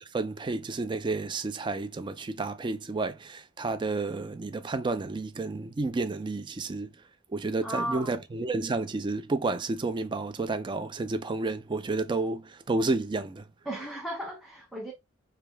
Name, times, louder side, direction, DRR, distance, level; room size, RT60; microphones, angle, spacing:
voice 1, 0.1-6.9 7.3-13.4, right 3 dB, 25° right, 0.4 m, -31 dB
voice 2, 7.6-8.2 13.7-14.9, right 1 dB, ahead, 0.8 m, -35 dB
5.0 x 2.3 x 3.4 m
head